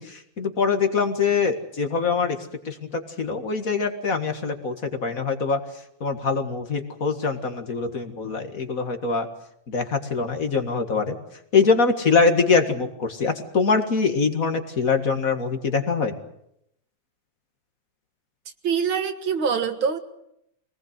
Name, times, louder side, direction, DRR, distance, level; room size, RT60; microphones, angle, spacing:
voice 1, 0.0-2.4 2.7-5.6 6.0-9.3 9.7-11.2 11.5-16.2, left 4 dB, 45° left, 6 dB, 2.1 m, -23 dB
voice 2, 18.6-20.0, right 6 dB, 75° right, 8 dB, 2.4 m, -24 dB
24.0 x 19.0 x 8.1 m, 0.77 s
omnidirectional pair, 2.2 m